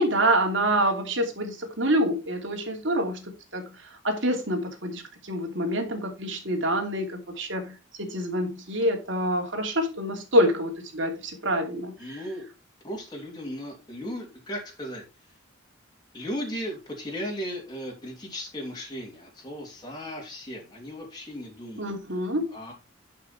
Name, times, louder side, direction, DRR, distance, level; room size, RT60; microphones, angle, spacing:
voice 1, 0.0-12.2 21.8-22.5, equal, 65° right, 2.9 m, -27 dB
voice 2, 12.0-12.5 12.8-15.0 16.1-21.9 22.5-22.7, equal, 20° left, 3.0 m, -36 dB
11.5 x 5.8 x 4.3 m
head